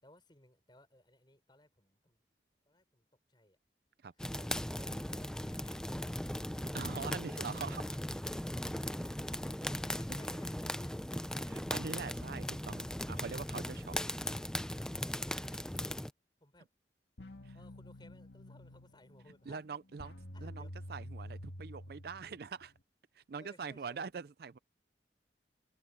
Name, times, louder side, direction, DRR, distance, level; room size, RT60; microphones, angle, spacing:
voice 1, 0.0-2.2 2.7-3.6 4.2-6.5 9.6-10.9 13.7-14.3 15.2-16.1 16.4-16.7 17.5-19.6 20.3-20.7 23.4-24.1, left 1 dB, 25° left, 6.4 m, -60 dB
sound 1, 4.2-16.1, left 1 dB, 5° left, 0.5 m, -38 dB
voice 2, 6.7-7.8 11.5-13.9 17.4-17.5 19.5-20.1 20.4-22.7 23.2-24.6, right 5 dB, 55° right, 0.4 m, -43 dB
sound 2, 17.2-22.8, equal, 75° left, 2.0 m, -49 dB
head